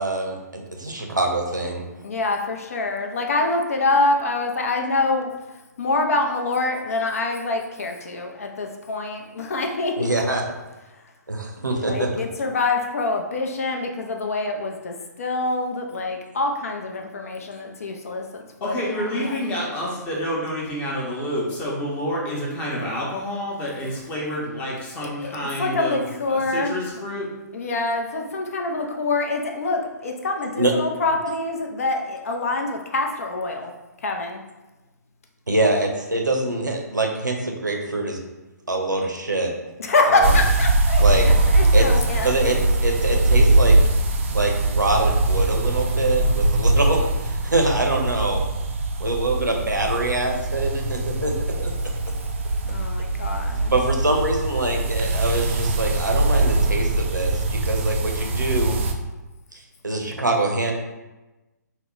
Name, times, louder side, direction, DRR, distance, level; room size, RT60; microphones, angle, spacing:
voice 1, 0.0-1.8 10.0-10.4 11.3-12.1 30.6-30.7 35.5-38.2 38.7-39.5 40.1-40.3 41.0-41.3 41.7-41.9 42.2-43.8 44.3-48.4 49.0-51.3 51.6-51.7 53.7-58.8 59.8-60.7, right 2 dB, 80° right, 1 dB, 0.7 m, -24 dB
voice 2, 2.0-5.3 5.8-10.1 11.6-19.3 25.0-26.8 27.5-33.7 34.0-34.4 39.8-42.3 52.6-53.7, left 3 dB, 50° left, 3 dB, 0.6 m, -25 dB
voice 3, 18.6-26.0 26.3-27.3, equal, 15° left, -4 dB, 0.8 m, -28 dB
sound 1, 40.2-58.9, right 2 dB, 40° right, 0.4 m, -21 dB
4.5 x 2.1 x 3.7 m, 1.1 s
figure-of-eight pair, 130°, 10 cm